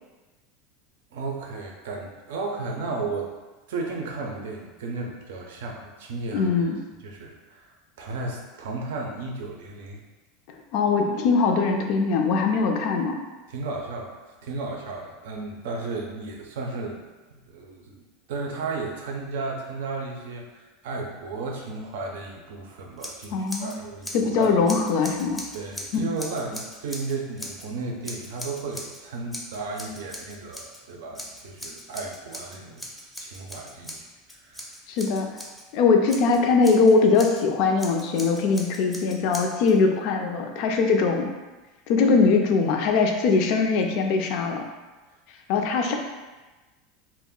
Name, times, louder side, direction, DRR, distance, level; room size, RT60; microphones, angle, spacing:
voice 1, 1.1-3.3 3.7-6.7 7.0-7.7 8.0-10.0 13.5-17.0 17.3-18.0 18.3-24.6 25.5-32.9 33.2-34.1 34.4-34.6, right 3 dB, 80° right, 0 dB, 0.4 m, -34 dB
voice 2, 6.3-6.8 10.7-13.2 23.3-23.8 24.1-25.4 34.9-35.3 35.7-41.3 41.9-44.6 45.5-45.9, left 4 dB, 60° left, 3 dB, 0.4 m, -21 dB
Scissors, 23.0-23.8 24.0-27.7 28.0-29.0 29.3-30.8 31.1-35.6 36.1-37.4 37.8-39.7, equal, 5° left, 0.5 m, -39 dB
2.3 x 2.0 x 3.6 m, 1.2 s
supercardioid pair, 110°, 0 cm